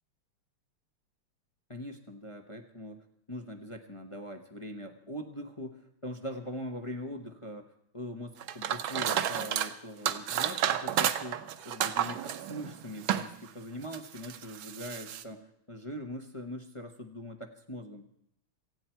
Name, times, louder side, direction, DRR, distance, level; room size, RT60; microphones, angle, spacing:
voice 1, 1.7-18.1, equal, 25° left, 4 dB, 0.7 m, -42 dB
sound 1, 8.4-9.7 10.1-13.4 13.8-15.2, right 10 dB, 70° right, 1.6 m, -31 dB
17.5 x 15.5 x 4.5 m, 0.74 s
omnidirectional pair, 2.3 m